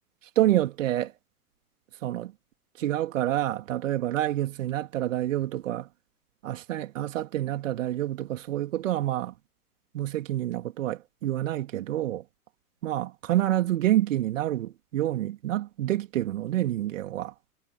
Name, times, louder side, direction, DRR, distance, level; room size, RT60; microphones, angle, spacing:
voice 1, 0.4-1.1 2.0-2.3 2.8-5.9 6.4-9.3 9.9-12.2 12.8-17.3, right 13 dB, 55° right, 3.8 m, -28 dB
figure-of-eight pair, 105°, 46 cm